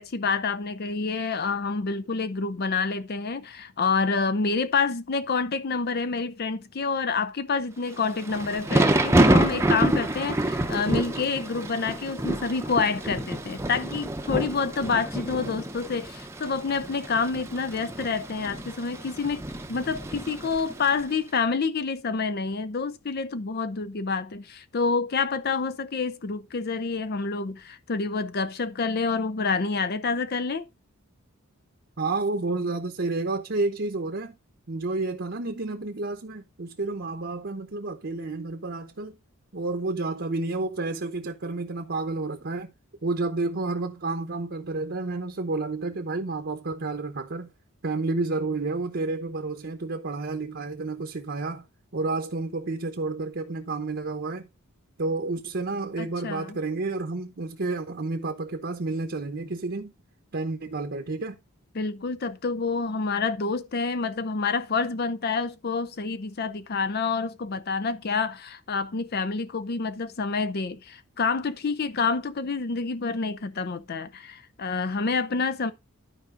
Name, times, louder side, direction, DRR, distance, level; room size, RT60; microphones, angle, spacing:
voice 1, 0.0-19.4 19.7-30.7 56.0-56.6 61.7-75.7, left 4 dB, 45° left, 0.5 m, -28 dB
Thunder / Rain, 8.0-21.0, right 1 dB, 10° right, 0.7 m, -27 dB
voice 2, 32.0-34.4 34.7-39.2 39.5-42.7 43.0-47.5 47.8-51.6 51.9-54.5 55.0-59.9 60.3-61.4, right 3 dB, 50° right, 0.9 m, -30 dB
12.0 x 5.0 x 3.8 m
head